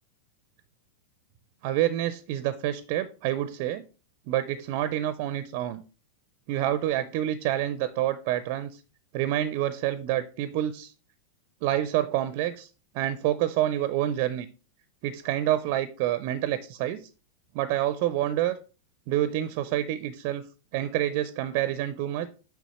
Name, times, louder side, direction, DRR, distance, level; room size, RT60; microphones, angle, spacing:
voice 1, 1.6-3.8 4.3-5.8 6.5-8.8 9.1-10.9 11.6-12.7 12.9-14.5 15.0-17.1 17.5-18.6 19.1-20.4 20.7-22.3, right 13 dB, 45° right, 15 dB, 0.4 m, -27 dB
6.8 x 5.9 x 3.0 m, 0.35 s
figure-of-eight pair, 90°, 0 cm